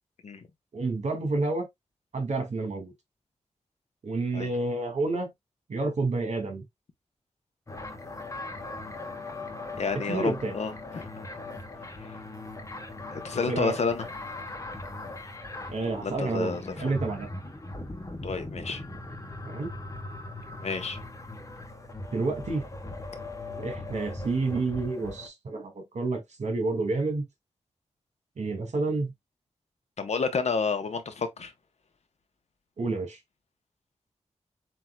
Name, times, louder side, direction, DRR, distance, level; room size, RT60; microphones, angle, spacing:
voice 1, 0.7-1.7 2.1-2.9 4.0-5.3 5.7-6.6 10.1-10.6 13.5-13.7 15.7-17.3 19.5-19.7 22.1-22.6 23.6-27.2 28.4-29.1 32.8-33.2, right 3 dB, 80° right, 1.8 m, -29 dB
sound 1, 7.7-25.3, left 2 dB, 25° left, 0.9 m, -39 dB
voice 2, 9.8-11.1 13.1-14.1 16.0-16.9 18.2-18.8 20.6-21.0 30.0-31.5, left 4 dB, 75° left, 0.9 m, -30 dB
7.6 x 2.7 x 2.2 m
wide cardioid pair, 120°, 12 cm